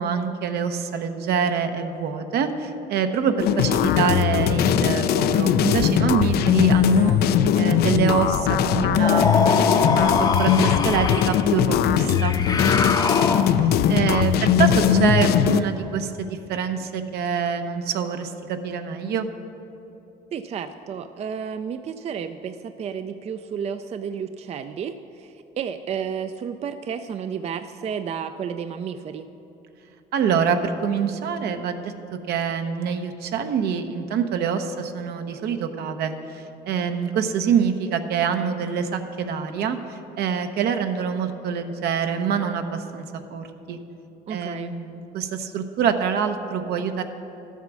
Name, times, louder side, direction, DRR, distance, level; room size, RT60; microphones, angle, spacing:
voice 1, 0.0-7.2 7.5-12.3 13.6-19.3 30.1-43.8 44.3-47.0, right 7 dB, 75° right, 7 dB, 0.9 m, -25 dB
sound 1, 3.4-15.6, left 9 dB, 70° left, 0.5 m, -20 dB
sound 2, 9.0-11.5 12.1-13.8, left 3 dB, 25° left, 0.7 m, -24 dB
voice 2, 20.3-29.3 44.3-44.7, right 7 dB, 40° right, 10 dB, 0.4 m, -32 dB
12.5 x 8.2 x 6.2 m, 2.9 s
cardioid pair, 110°, 17 cm